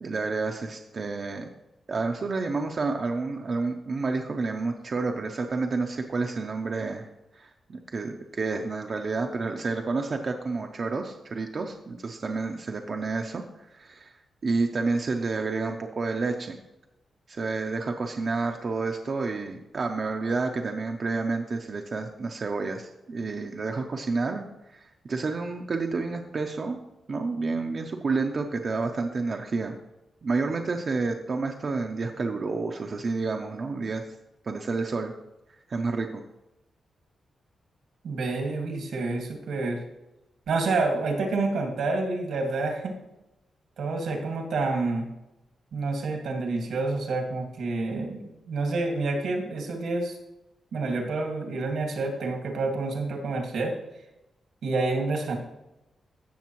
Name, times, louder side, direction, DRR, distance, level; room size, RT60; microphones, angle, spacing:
voice 1, 0.0-1.5 1.9-7.1 7.3-13.4 13.7-14.1 14.4-16.6 17.3-24.5 24.7-26.8 27.1-29.7 30.2-34.0 34.4-35.1 35.7-36.2, right 3 dB, 40° right, 3 dB, 0.6 m, -29 dB
voice 2, 38.0-39.8 40.5-43.0 43.8-45.1 45.7-50.1 50.7-53.8 54.6-55.4, right 3 dB, 80° right, 3 dB, 1.9 m, -28 dB
15.5 x 6.6 x 3.0 m, 0.95 s
wide cardioid pair, 145°, 0 cm